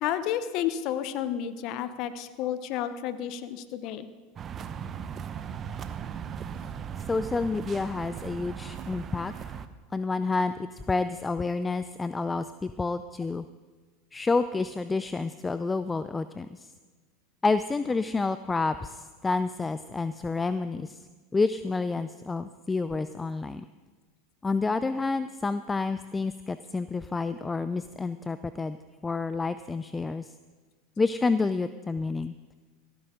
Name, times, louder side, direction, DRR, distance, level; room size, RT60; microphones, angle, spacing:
voice 1, 0.0-4.1, left 10 dB, 55° left, 12 dB, 0.8 m, -31 dB
sound 1, 4.4-9.7, right 7 dB, 35° right, 0.7 m, -38 dB
voice 2, 7.1-9.6 9.9-13.4 14.1-16.7 17.4-21.0 21.3-23.7 24.4-28.8 29.0-30.3 31.0-32.5, left 3 dB, 15° left, 12 dB, 0.4 m, -29 dB
15.5 x 13.5 x 3.8 m, 1.4 s
hypercardioid pair, 95°, 0 cm